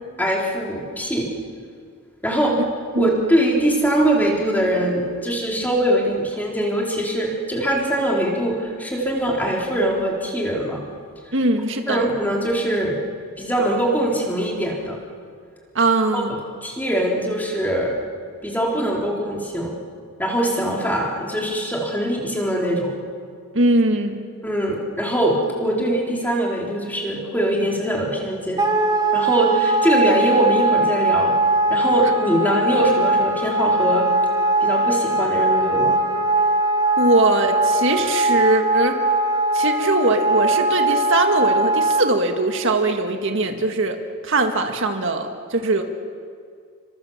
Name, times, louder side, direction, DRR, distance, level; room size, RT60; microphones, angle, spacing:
voice 1, 0.2-1.3 2.2-2.6 3.0-10.8 11.9-13.0 13.4-15.0 16.1-18.0 18.4-19.8 20.2-22.9 24.4-28.6 29.1-31.3 31.7-34.1 34.6-36.0, right 1 dB, 10° left, -2 dB, 4.0 m, -22 dB
voice 2, 2.9-3.3 11.3-12.1 15.8-16.4 23.5-24.2 37.0-39.0 39.5-44.0 44.2-45.8, right 2 dB, 60° right, 4 dB, 1.8 m, -21 dB
Wind instrument woodwind instrument, 28.6-42.1, right 2 dB, 20° right, 2.6 m, -20 dB
30.0 x 25.5 x 7.4 m, 2.2 s
head